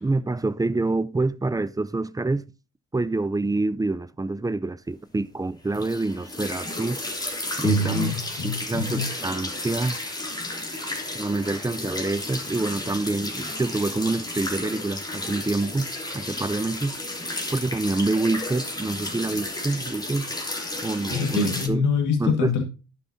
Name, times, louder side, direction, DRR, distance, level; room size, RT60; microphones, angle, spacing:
voice 1, 0.0-2.5 2.9-7.0 7.6-8.1 8.4-10.0 11.1-17.0 17.5-20.3 20.8-21.8 22.2-22.6, right 2 dB, 10° right, 0.5 m, -27 dB
sound 1, 5.7-21.7, left 2 dB, 15° left, 3.0 m, -33 dB
voice 2, 7.6-9.1 21.1-22.6, left 4 dB, 85° left, 1.9 m, -25 dB
11.5 x 7.3 x 2.8 m
cardioid pair, 90°, 30 cm